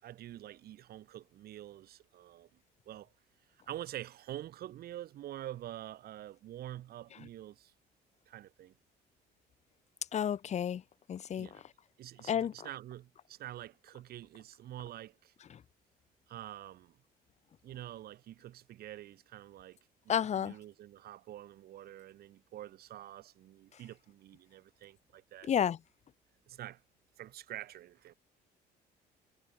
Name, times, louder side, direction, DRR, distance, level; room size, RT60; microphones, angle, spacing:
voice 1, 0.0-2.5 2.9-3.1 3.7-7.7 8.3-8.7 11.4-11.6 12.0-15.3 16.3-17.0 17.6-19.8 20.3-25.5 26.5-26.8 27.2-28.1, right 13 dB, 65° right, 4.0 m, -46 dB
voice 2, 10.1-10.8 11.1-11.6 12.3-12.5 15.5-15.6 20.1-20.6 25.5-25.8, left 9 dB, 40° left, 1.1 m, -31 dB
cardioid pair, 110°, 17 cm